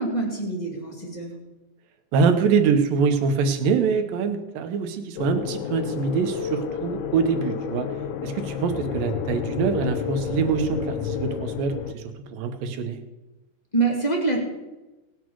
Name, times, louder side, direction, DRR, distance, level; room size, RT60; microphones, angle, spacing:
voice 1, 0.0-1.3 13.7-14.4, right 3 dB, 20° left, 0 dB, 1.2 m, -25 dB
voice 2, 2.1-7.9 8.2-12.0 12.3-13.0, right 5 dB, 70° right, 8 dB, 2.6 m, -24 dB
sound 1, 5.2-11.9, left 8 dB, 90° left, 2.9 m, -31 dB
18.5 x 8.5 x 4.7 m, 1.1 s
omnidirectional pair, 4.4 m